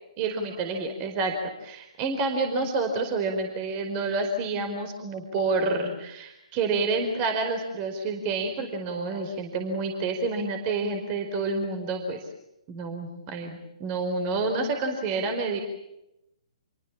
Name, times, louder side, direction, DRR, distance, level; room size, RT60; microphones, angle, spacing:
voice 1, 0.2-1.3 1.6-12.2 12.7-15.6, right 3 dB, 30° right, 5 dB, 4.9 m, -28 dB
28.5 x 24.0 x 7.5 m, 0.86 s
figure-of-eight pair, 130°, 3 cm